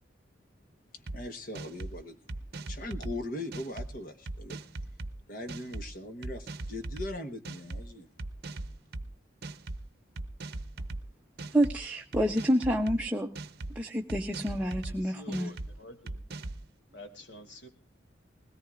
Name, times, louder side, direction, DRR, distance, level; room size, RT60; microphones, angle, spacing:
voice 1, 0.9-2.2 2.7-4.6 5.3-8.1, left 1 dB, 45° left, 7 dB, 1.1 m, -40 dB
sound 1, 1.1-1.2 1.5-1.9 2.3-3.1 3.5-3.9 4.3-5.1 5.5-5.8 6.2-7.1 7.4-7.8 8.2-9.0 9.4-9.8 10.2-11.0 11.4-11.7 12.1-13.0 13.3-13.7 14.1-14.9 15.3-15.7 16.1-16.6, right 2 dB, 55° right, 0.7 m, -38 dB
voice 2, 11.5-13.3 13.7-15.5, equal, 5° right, 1 dB, 0.7 m, -28 dB
voice 3, 14.8-16.2 16.9-17.7, left 1 dB, 70° left, 7 dB, 2.2 m, -48 dB
20.5 x 17.5 x 2.5 m, 0.33 s
head